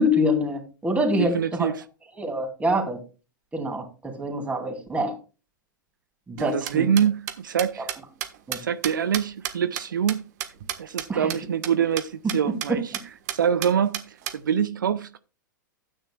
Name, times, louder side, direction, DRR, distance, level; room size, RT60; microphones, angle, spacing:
voice 1, 0.0-1.7 2.2-3.0 3.5-5.1 6.3-6.8 8.5-8.6 11.1-11.3 12.7-12.8, left 1 dB, 15° right, 2.8 m, -25 dB
voice 2, 1.2-1.8 6.4-7.9 8.5-10.2 10.8-12.9 13.3-15.2, right 8 dB, 75° right, 0.5 m, -25 dB
sound 1, 6.4-11.0 11.3-11.4 11.6-11.7 12.0-12.1 12.3-12.7 12.9-13.0 13.3-14.3, right 11 dB, 55° right, 1.4 m, -31 dB
13.0 x 9.0 x 2.3 m
hypercardioid pair, 100°, 11 cm